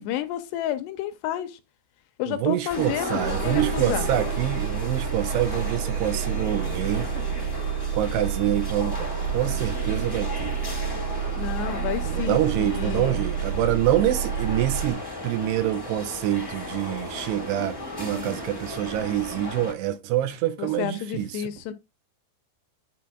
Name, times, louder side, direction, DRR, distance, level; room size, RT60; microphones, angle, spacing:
voice 1, 0.0-1.6 2.2-4.1 11.4-13.2 18.1-18.4 20.6-21.7, left 11 dB, 80° left, 2.7 m, -31 dB
voice 2, 2.3-7.1 7.9-10.6 12.0-21.5, right 12 dB, 80° right, 2.8 m, -26 dB
sound 1, 2.7-19.7, left 1 dB, 20° left, 0.6 m, -35 dB
sound 2, 3.2-14.9, right 8 dB, 50° right, 2.2 m, -29 dB
10.5 x 3.7 x 4.9 m
omnidirectional pair, 5.1 m